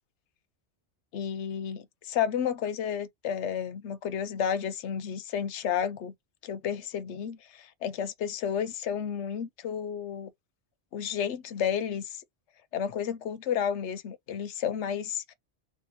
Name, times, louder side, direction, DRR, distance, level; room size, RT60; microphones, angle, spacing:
voice 1, 1.1-6.1 6.4-7.4 7.8-10.3 10.9-12.2 12.7-15.3, left 8 dB, 90° left, 0.9 m, -31 dB
2.8 x 2.6 x 4.0 m
omnidirectional pair, 1.2 m